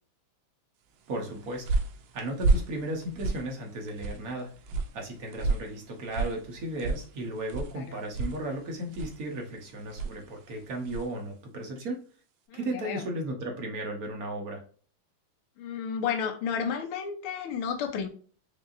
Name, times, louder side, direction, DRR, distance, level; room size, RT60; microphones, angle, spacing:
voice 1, 1.1-1.8 2.1-4.5 4.9-12.0 12.5-14.6, right 1 dB, 55° right, 1.2 m, -35 dB
sound 1, 1.1-11.2, right 3 dB, 75° right, 1.4 m, -33 dB
voice 2, 12.5-13.0 15.6-18.1, left 7 dB, 90° left, 1.6 m, -32 dB
5.2 x 2.7 x 2.5 m
omnidirectional pair, 2.3 m